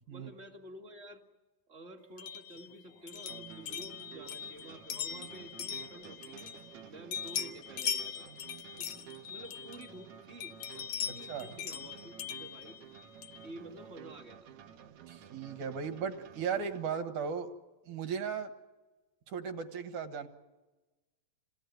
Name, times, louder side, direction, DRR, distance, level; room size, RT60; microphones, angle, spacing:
voice 1, 0.1-1.2 1.7-6.5 6.9-8.3 8.8-12.8 13.4-14.5, right 1 dB, 30° right, 2 dB, 1.2 m, -50 dB
sound 1, 2.2-6.8 7.1-10.0 10.4-13.5, left 8 dB, 75° left, 1.6 m, -40 dB
sound 2, 3.1-17.0, right 9 dB, 80° right, 1.3 m, -52 dB
voice 2, 11.1-11.5 15.1-17.5 17.9-18.5 19.3-20.3, right 6 dB, 60° right, 7 dB, 2.6 m, -36 dB
28.0 x 18.0 x 9.3 m, 1.2 s
omnidirectional pair, 4.2 m